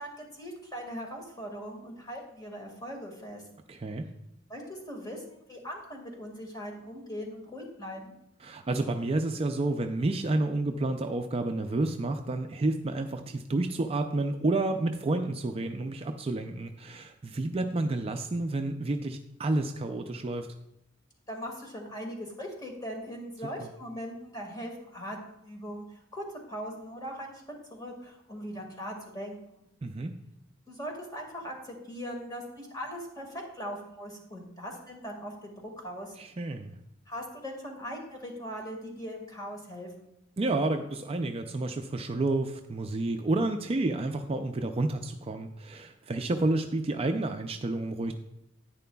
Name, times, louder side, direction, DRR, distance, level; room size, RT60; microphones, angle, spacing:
voice 1, 0.0-3.4 4.5-8.1 21.3-27.3 27.7-29.6 30.7-36.2 37.1-39.9, equal, 20° left, 1 dB, 1.8 m, -40 dB
voice 2, 3.7-4.0 8.4-20.5 23.6-23.7 29.8-30.1 36.2-36.8 40.4-48.1, right 2 dB, 30° right, 6 dB, 0.4 m, -30 dB
10.5 x 9.2 x 2.3 m, 0.82 s
head